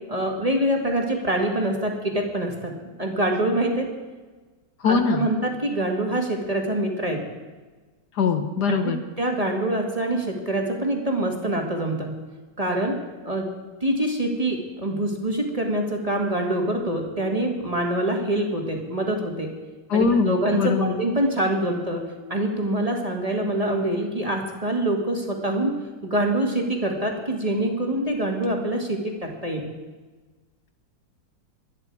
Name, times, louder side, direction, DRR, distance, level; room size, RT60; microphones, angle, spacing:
voice 1, 0.1-3.9 4.8-7.2 8.7-12.2 12.6-13.0 13.2-13.5 13.8-19.5 19.9-22.0 22.3-25.7 26.0-29.7, right 1 dB, 20° right, 1 dB, 1.9 m, -25 dB
voice 2, 4.8-5.3 8.2-9.0 19.9-20.9, left 5 dB, 65° left, 7 dB, 1.5 m, -22 dB
23.0 x 9.6 x 4.8 m, 1.3 s
omnidirectional pair, 1.9 m